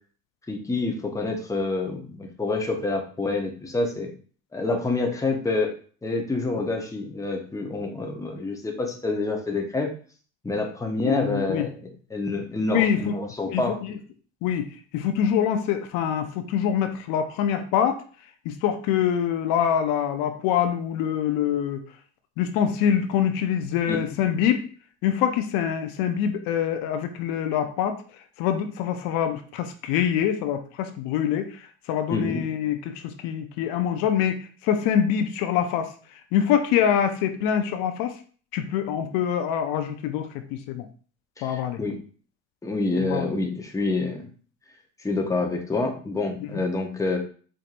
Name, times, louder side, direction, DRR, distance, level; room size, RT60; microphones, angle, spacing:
voice 1, 0.5-4.1 4.5-5.7 6.0-9.9 10.4-13.8 23.9-24.0 32.1-32.4 41.4-42.0 42.6-44.3 45.0-47.2, left 3 dB, 10° left, 2 dB, 0.8 m, -27 dB
voice 2, 11.0-11.7 12.7-13.1 13.4-13.9 14.4-18.0 18.5-21.8 22.4-24.7 25.0-28.0 28.4-35.9 36.3-38.2 38.5-40.9 41.4-41.8 43.0-43.3 46.4-46.6, left 9 dB, 70° left, 8 dB, 0.6 m, -25 dB
4.5 x 2.6 x 2.5 m, 0.42 s
supercardioid pair, 95°, 36 cm